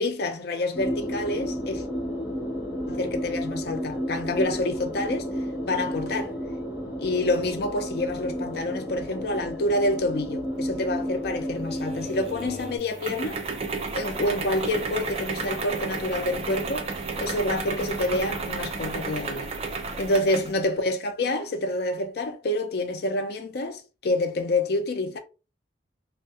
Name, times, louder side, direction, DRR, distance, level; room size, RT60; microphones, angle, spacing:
voice 1, 0.0-1.8 2.9-5.3 5.6-6.3 7.0-13.4 13.9-16.9 17.2-19.5 20.0-25.2, left 1 dB, 55° left, 0.4 m, -27 dB
sound 1, 0.7-12.8, equal, 10° right, 0.7 m, -32 dB
sound 2, 11.8-20.6, right 4 dB, 35° right, 0.4 m, -32 dB
2.4 x 2.2 x 2.7 m
head